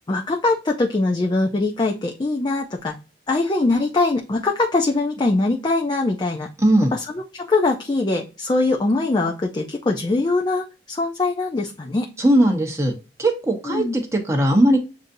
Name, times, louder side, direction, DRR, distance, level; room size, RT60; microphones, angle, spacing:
voice 1, 0.1-2.9 3.3-6.5 6.9-12.1 13.6-14.0, left 2 dB, 25° left, 1 dB, 0.4 m, -22 dB
voice 2, 6.6-6.9 12.2-12.9 13.2-14.8, right 1 dB, 15° right, 2 dB, 0.8 m, -18 dB
7.7 x 2.6 x 2.6 m, 0.32 s
head